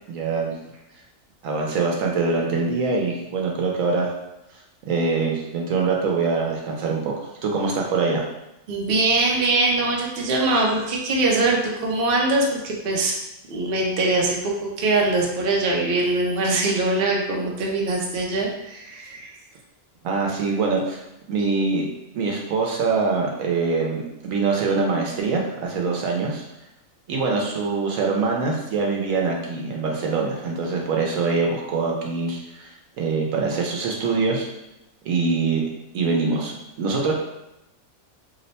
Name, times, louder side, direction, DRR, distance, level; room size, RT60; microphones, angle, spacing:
voice 1, 0.1-0.5 1.4-4.1 4.9-8.2 20.0-21.0 21.3-21.9 22.1-26.4 27.1-34.5 35.1-35.7 35.9-37.1, right 4 dB, 80° right, 0 dB, 1.0 m, -24 dB
voice 2, 8.7-13.2 13.5-19.4, right 2 dB, 55° right, -2 dB, 0.7 m, -22 dB
2.9 x 2.1 x 4.0 m, 0.90 s
omnidirectional pair, 1.4 m